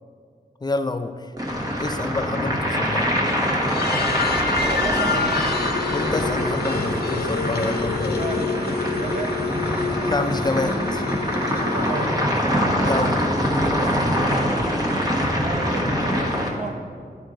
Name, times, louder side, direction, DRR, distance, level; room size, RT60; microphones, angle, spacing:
voice 1, 0.6-1.1 1.8-3.0 5.9-8.2 10.0-11.0 12.8-13.3, left 3 dB, 25° left, 9 dB, 0.4 m, -27 dB
sound 1, 1.4-16.5, equal, 25° right, 1.2 m, -24 dB
sound 2, 3.6-12.4, left 4 dB, 75° left, 0.6 m, -28 dB
voice 2, 4.6-5.7 8.2-9.4 11.6-12.4 15.3-16.8, right 3 dB, 45° right, 4 dB, 0.7 m, -33 dB
11.5 x 4.5 x 3.8 m, 2.2 s
wide cardioid pair, 100°, 16 cm